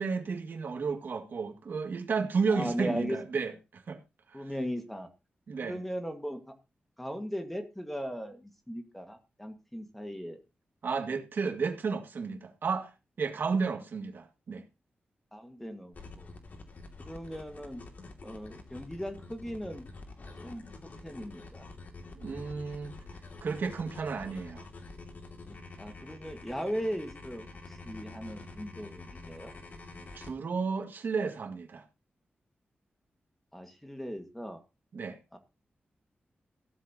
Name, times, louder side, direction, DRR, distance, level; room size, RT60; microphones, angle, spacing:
voice 1, 0.0-4.0 4.3-4.4 5.5-5.8 10.8-12.9 13.2-14.6 22.1-23.0 23.4-24.6 30.1-31.8 34.9-35.2, right 5 dB, 65° right, 2.1 m, -32 dB
voice 2, 2.5-3.2 3.5-3.6 4.3-5.1 5.6-6.5 7.0-10.4 15.3-16.3 17.0-17.8 18.2-19.9 20.4-21.7 25.8-29.5 33.5-34.6 35.3-35.4, equal, 5° left, 1.8 m, -38 dB
sound 1, 15.9-30.3, left 3 dB, 50° left, 2.4 m, -47 dB
15.5 x 13.0 x 2.9 m
wide cardioid pair, 145°, 4 cm